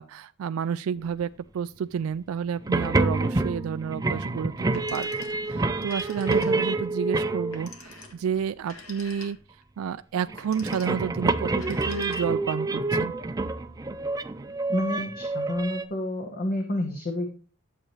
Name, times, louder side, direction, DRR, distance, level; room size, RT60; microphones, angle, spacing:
voice 1, 0.0-13.1, right 7 dB, 80° right, 0.3 m, -31 dB
sound 1, 2.6-7.9 10.2-15.8, right 2 dB, 15° right, 0.5 m, -27 dB
Telephone, 4.6-5.5 5.8-6.8 7.5-9.6 10.3-11.1 11.5-12.5, left 3 dB, 80° left, 2.0 m, -46 dB
voice 2, 14.7-17.3, left 1 dB, 45° left, 1.2 m, -29 dB
11.0 x 7.5 x 3.2 m
head